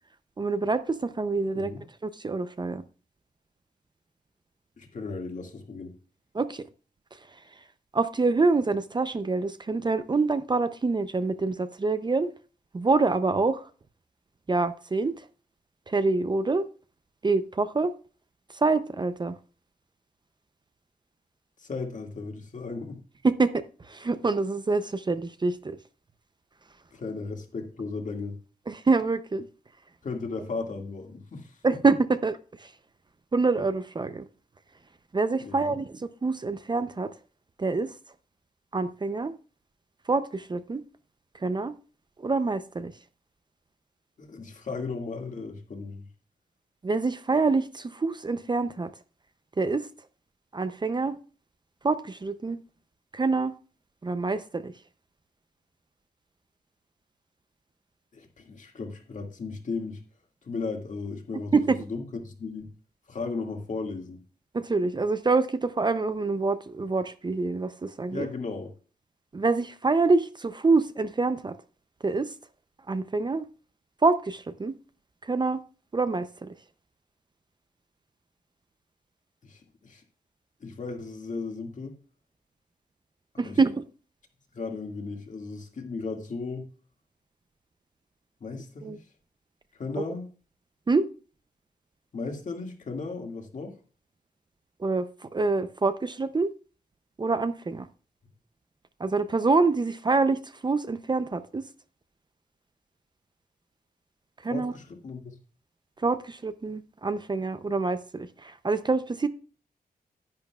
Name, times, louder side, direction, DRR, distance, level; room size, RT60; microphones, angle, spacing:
voice 1, 0.4-1.7 2.0-2.8 6.3-6.6 7.9-12.3 12.7-13.7 14.5-15.2 15.9-16.7 17.2-17.9 18.5-19.3 23.2-23.5 23.9-25.8 28.7-29.5 31.6-32.7 33.3-34.2 35.1-37.1 37.6-37.9 38.7-39.3 40.1-40.8 41.4-41.7 42.2-42.9 46.8-48.9 49.6-49.9 50.5-51.2 51.8-52.6 53.1-53.5 54.0-54.7 61.5-61.8 64.5-68.3 69.3-71.6 72.0-72.3 72.9-73.4 74.0-74.7 75.2-75.6 75.9-76.5 83.4-83.8 88.8-89.0 90.9-91.1 94.8-95.1 95.3-96.5 97.2-97.9 99.0-101.6 104.4-104.7 106.0-109.3, right 3 dB, 30° right, 0.6 m, -26 dB
voice 2, 4.8-5.9 21.6-23.0 26.9-28.4 30.0-31.6 35.4-35.8 44.2-46.1 58.1-60.0 60.4-62.7 63.1-64.2 68.1-68.7 79.4-80.0 80.6-82.0 83.4-83.6 84.5-86.7 88.4-89.0 89.8-90.3 92.1-93.8 104.5-105.3, left 4 dB, 55° left, 2.1 m, -35 dB
11.0 x 10.5 x 2.3 m
wide cardioid pair, 150°, 16 cm